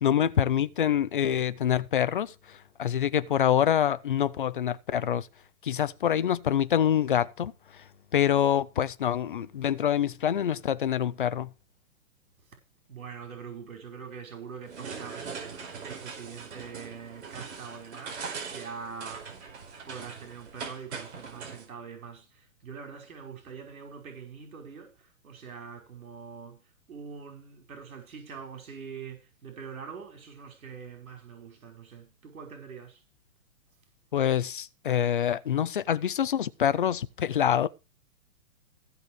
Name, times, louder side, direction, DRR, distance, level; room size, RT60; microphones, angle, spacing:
voice 1, 0.0-5.3 5.6-7.5 8.1-11.5 34.1-37.7, left 9 dB, 40° left, 0.6 m, -26 dB
voice 2, 12.9-19.3 19.8-26.6 26.9-33.0, right 6 dB, 80° right, 5.6 m, -44 dB
sound 1, 14.6-21.6, right 5 dB, 55° right, 4.5 m, -41 dB
15.5 x 6.8 x 4.7 m
hypercardioid pair, 180°, 41 cm